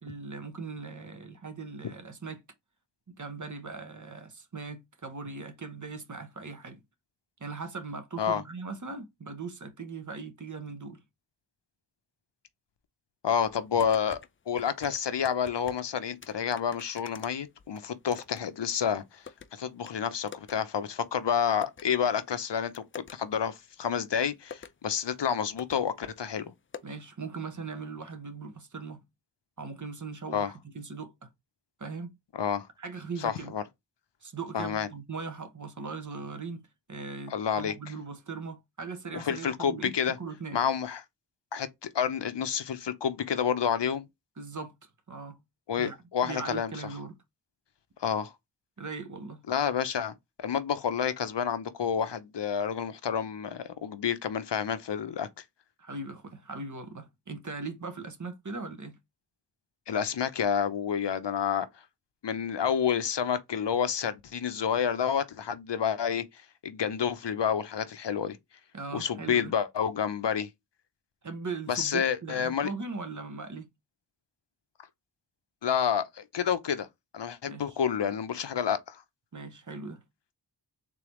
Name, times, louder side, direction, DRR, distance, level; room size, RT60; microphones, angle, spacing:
voice 1, 0.0-2.4 3.1-6.8 7.4-11.0 26.8-29.1 29.6-31.3 31.8-32.1 32.8-33.5 34.2-40.6 44.4-44.7 45.1-45.4 45.8-46.0 46.2-47.2 48.8-49.4 55.8-59.0 68.7-69.5 71.2-73.7 77.4-77.6 79.3-80.0, right 4 dB, 40° right, 1.0 m, -39 dB
voice 2, 13.2-14.2 14.5-22.8 23.1-26.5 30.3-30.5 32.3-32.7 33.2-33.6 34.5-34.9 37.3-37.7 39.1-40.2 40.5-41.0 41.5-44.0 45.7-46.9 48.0-48.3 49.5-55.4 59.9-61.7 62.2-68.4 68.9-70.5 71.7-72.7 75.6-76.9 77.1-79.0, left 7 dB, 70° left, 0.7 m, -29 dB
sound 1, 13.5-14.3 14.6-15.9 16.2-18.4 18.7-19.5 19.9-20.0 20.3-20.6 20.8-20.9 21.6-21.8 22.4-23.1 24.0-24.1 24.4-24.8 25.3-25.4 25.6-25.8 26.0-26.1 26.7-26.8, left 6 dB, 30° left, 0.4 m, -46 dB
3.8 x 3.4 x 3.1 m
wide cardioid pair, 55°, 45 cm